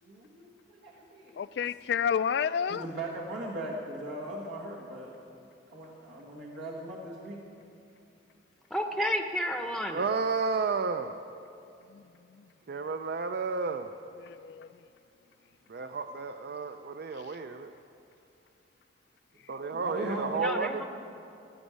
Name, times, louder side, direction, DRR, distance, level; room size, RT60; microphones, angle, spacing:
voice 1, 0.0-1.4 2.7-5.1 5.7-7.4 19.7-20.4, right 1 dB, 85° right, 1.6 m, -39 dB
voice 2, 1.4-2.9 11.9-12.0 12.3-12.5 14.2-14.7, left 7 dB, 60° left, 0.3 m, -30 dB
voice 3, 8.7-10.1 20.3-20.8, equal, ahead, 0.7 m, -31 dB
voice 4, 9.9-11.1 12.7-13.9 15.7-17.7 19.5-20.8, right 4 dB, 55° right, 0.4 m, -32 dB
18.0 x 6.2 x 8.2 m
head